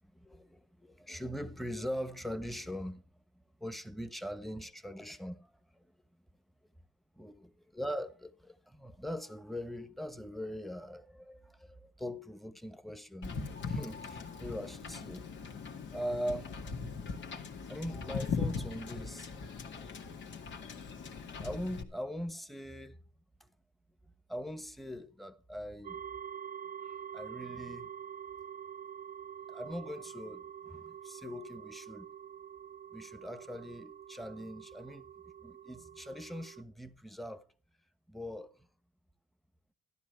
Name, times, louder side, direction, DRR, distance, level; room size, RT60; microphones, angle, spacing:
voice 1, 0.1-3.0 3.3-5.9 7.1-15.3 15.9-16.6 17.7-19.3 21.3-23.0 23.4-23.5 24.3-26.0 26.8-27.9 29.5-32.1 32.9-35.1 35.4-37.4 38.1-38.7, equal, ahead, 1.2 m, -41 dB
Wind / Boat Water vehicle, 13.2-21.8, left 5 dB, 70° left, 2.1 m, -40 dB
sound 1, 25.8-36.6, right 9 dB, 45° right, 0.6 m, -46 dB
12.5 x 11.5 x 4.6 m
cardioid pair, 90°, 20 cm